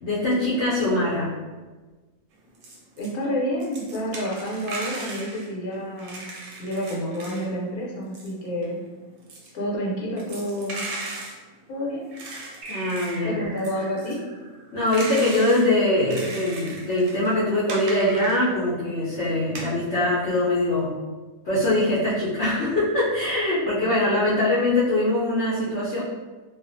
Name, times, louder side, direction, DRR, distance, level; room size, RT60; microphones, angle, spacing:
voice 1, 0.0-1.3 12.7-13.4 14.7-20.9 21.4-26.0, left 1 dB, 60° left, -10 dB, 0.9 m, -22 dB
sound 1, 2.3-3.1 3.4-7.5 7.8-18.8 19.3-19.7, right 2 dB, 90° right, 1.1 m, -37 dB
voice 2, 3.0-6.2 6.6-8.8 9.5-10.9 11.7-12.0 13.2-14.2 23.8-23.9, equal, 85° left, -4 dB, 1.2 m, -29 dB
sound 2, 12.6-15.6, right 2 dB, 70° right, 0.9 m, -40 dB
2.4 x 2.4 x 2.5 m, 1.3 s
omnidirectional pair, 1.5 m